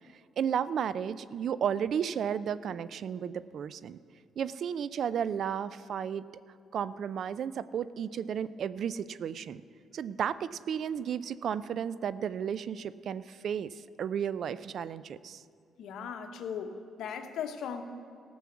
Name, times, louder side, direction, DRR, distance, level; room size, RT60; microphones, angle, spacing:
voice 1, 0.4-4.0 4.4-6.3 6.7-9.6 9.9-15.4, right 8 dB, 65° right, 17 dB, 0.4 m, -33 dB
voice 2, 15.8-17.8, left 7 dB, 80° left, 7 dB, 1.0 m, -38 dB
15.0 x 6.2 x 7.0 m, 2.4 s
cardioid pair, 90°, 0 cm